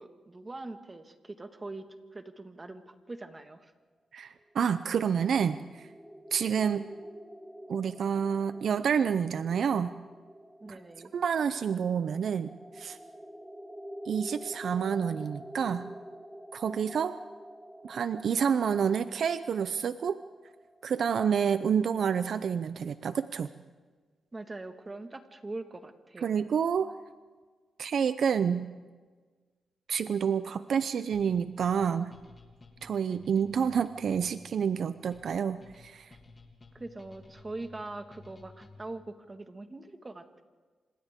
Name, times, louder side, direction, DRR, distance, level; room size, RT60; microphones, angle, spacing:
voice 1, 0.0-3.7 10.6-11.1 24.3-26.4 36.7-40.4, right 2 dB, 25° right, 7 dB, 1.7 m, -42 dB
voice 2, 4.1-5.9 6.3-6.9 7.7-9.9 10.7-10.8 11.1-13.0 14.1-15.9 16.5-17.2 17.8-20.2 20.8-23.5 26.2-26.9 27.8-28.7 29.9-32.1 32.8-36.1, right 7 dB, 70° right, 12 dB, 0.6 m, -28 dB
sound 1, 4.5-21.3, equal, 5° right, 3.3 m, -47 dB
sound 2, 31.1-39.0, left 3 dB, 35° left, 2.9 m, -54 dB
28.0 x 27.0 x 3.7 m, 1.4 s
cardioid pair, 85°, 0 cm